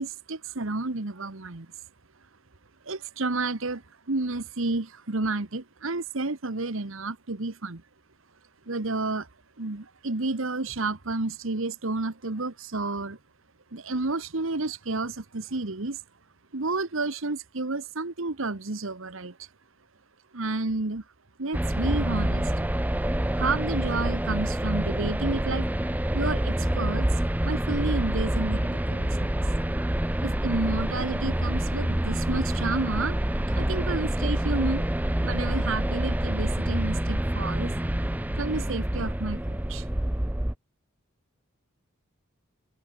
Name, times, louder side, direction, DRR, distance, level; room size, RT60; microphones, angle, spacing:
voice 1, 0.0-1.7 2.8-7.8 8.7-9.3 9.6-13.2 13.7-16.0 16.5-19.5 20.3-21.0 21.4-22.7 23.3-25.7 26.1-27.1 27.4-29.3 30.2-33.2 33.5-34.8 35.2-37.7 38.4-39.9, right 3 dB, 65° right, 1.3 m, -31 dB
sound 1, 21.5-40.5, right 1 dB, 5° right, 0.5 m, -27 dB
head